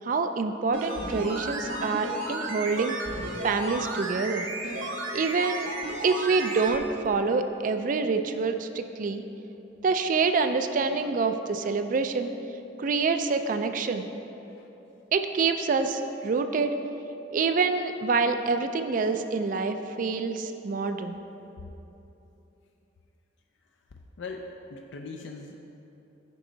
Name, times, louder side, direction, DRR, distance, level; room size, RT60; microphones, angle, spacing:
voice 1, 0.0-3.0 3.4-4.5 5.1-5.7 6.0-9.2 9.8-12.3 12.8-14.1 15.1-16.7 17.3-21.2, right 4 dB, 40° right, 8 dB, 0.3 m, -26 dB
sound 1, 0.7-6.8 7.0-7.1, right 1 dB, 85° right, 1.1 m, -34 dB
voice 2, 24.2-25.6, left 3 dB, 65° left, 2 dB, 0.4 m, -40 dB
9.2 x 5.2 x 3.9 m, 3.0 s
head